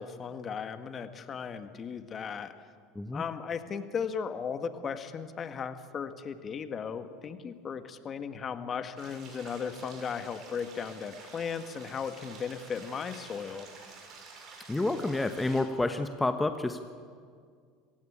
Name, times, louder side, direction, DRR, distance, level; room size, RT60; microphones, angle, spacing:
voice 1, 0.0-2.5 3.1-13.7, left 6 dB, 35° left, 9 dB, 1.7 m, -36 dB
sound 1, 9.0-15.6, right 4 dB, 50° right, 6.9 m, -50 dB
voice 2, 14.7-16.9, left 2 dB, 10° left, 8 dB, 1.2 m, -29 dB
25.5 x 16.0 x 8.8 m, 2.1 s
hypercardioid pair, 80°, 0 cm